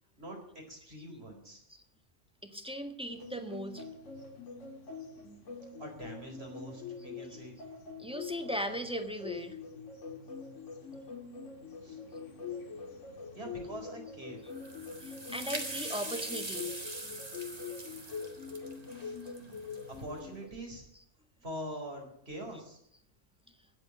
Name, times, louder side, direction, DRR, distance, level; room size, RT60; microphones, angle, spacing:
voice 1, 0.2-1.6 5.8-7.6 11.8-12.0 13.3-14.4 19.0-19.2 19.9-20.8 21.4-22.8, right 1 dB, 55° right, 2 dB, 4.7 m, -44 dB
voice 2, 2.4-3.8 7.3-7.4 8.0-9.6 15.0-16.7 17.0-17.2 20.9-21.0, equal, 5° right, 6 dB, 1.6 m, -38 dB
sound 1, 3.1-20.5, left 5 dB, 80° left, 2.0 m, -44 dB
sound 2, 14.5-20.0, right 2 dB, 30° right, 1.8 m, -42 dB
17.5 x 7.9 x 9.7 m, 0.70 s
omnidirectional pair, 1.3 m